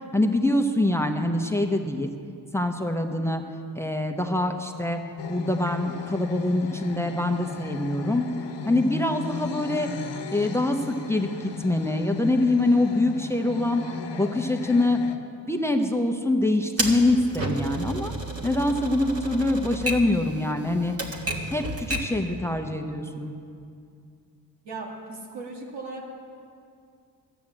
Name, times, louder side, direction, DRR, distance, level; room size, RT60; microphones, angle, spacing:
voice 1, 0.1-2.1 2.5-3.4 3.7-5.0 5.3-8.3 8.7-9.9 10.3-13.8 14.2-15.0 15.5-18.1 18.4-21.0 21.5-23.3, left 2 dB, 5° left, 5 dB, 0.9 m, -24 dB
sound 1, 5.2-15.2, left 5 dB, 85° left, 0.9 m, -36 dB
Typewriter, 16.8-22.2, right 1 dB, 35° right, 1.8 m, -32 dB
voice 2, 24.6-26.1, right 3 dB, 75° right, -1 dB, 2.2 m, -37 dB
12.5 x 9.1 x 7.4 m, 2.4 s
cardioid pair, 65°, 42 cm